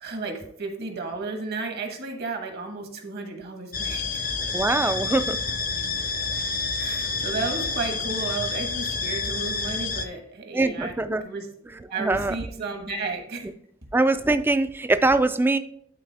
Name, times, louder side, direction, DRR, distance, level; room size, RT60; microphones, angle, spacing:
voice 1, 0.0-4.3 6.8-10.9 11.2-11.5 11.9-13.5, right 3 dB, 55° right, 4 dB, 1.4 m, -33 dB
sound 1, 3.7-10.1, left 4 dB, 45° left, 0.6 m, -28 dB
voice 2, 4.5-5.4 10.5-11.2 12.0-12.3 13.4-13.5 13.9-15.6, right 2 dB, 10° right, 11 dB, 0.3 m, -22 dB
11.5 x 4.2 x 3.4 m, 0.66 s
head